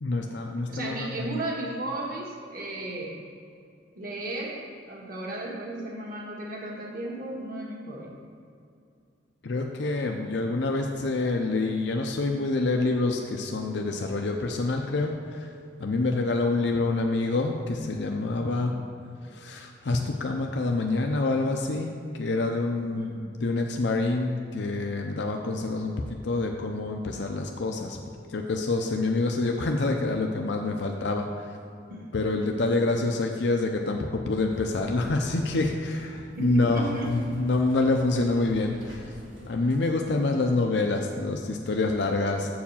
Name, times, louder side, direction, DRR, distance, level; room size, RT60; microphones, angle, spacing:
voice 1, 0.0-1.3 9.4-15.5 15.8-18.8 19.2-25.9 26.2-28.0 28.3-31.6 32.1-39.1 39.4-42.5, left 2 dB, 65° left, 2 dB, 0.6 m, -27 dB
voice 2, 0.7-3.2 3.9-8.1 22.8-23.2 31.9-32.1 32.4-32.6 36.3-37.4, right 2 dB, 50° right, -2 dB, 1.5 m, -35 dB
sound 1, 34.5-40.1, equal, 90° right, 1.7 m, -48 dB
7.2 x 4.8 x 7.1 m, 2.4 s
head